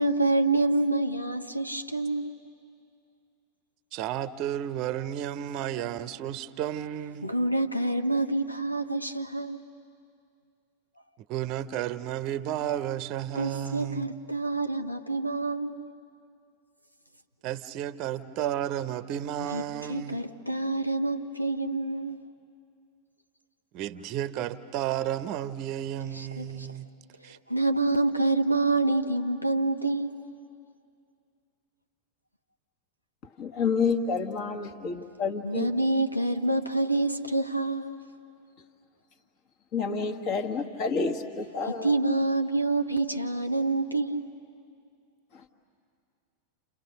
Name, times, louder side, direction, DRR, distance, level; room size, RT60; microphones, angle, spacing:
voice 1, 0.0-2.4 7.2-9.7 13.3-15.9 19.5-19.6 19.9-22.2 26.1-26.7 27.5-30.2 35.4-38.0 41.8-44.3, right 2 dB, 90° left, 1.0 m, -27 dB
voice 2, 3.9-7.3 11.3-14.2 17.4-20.2 23.7-26.9 27.2-27.4, right 11 dB, 40° right, 0.7 m, -32 dB
voice 3, 33.4-35.7 39.7-42.0 45.3-45.4, left 5 dB, 40° left, 1.6 m, -29 dB
30.0 x 28.5 x 6.6 m
figure-of-eight pair, 90°, 0 cm